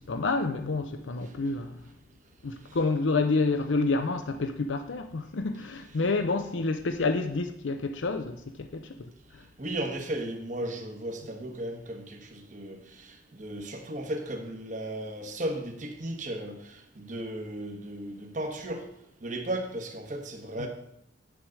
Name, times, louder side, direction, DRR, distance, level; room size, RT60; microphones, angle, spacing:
voice 1, 0.0-1.9 2.4-9.4 20.6-20.7, left 3 dB, 90° left, 0.6 m, -29 dB
voice 2, 9.6-12.8 13.3-16.6 17.0-18.8 19.2-20.7, right 1 dB, 40° right, 1.1 m, -35 dB
9.2 x 4.8 x 6.4 m
head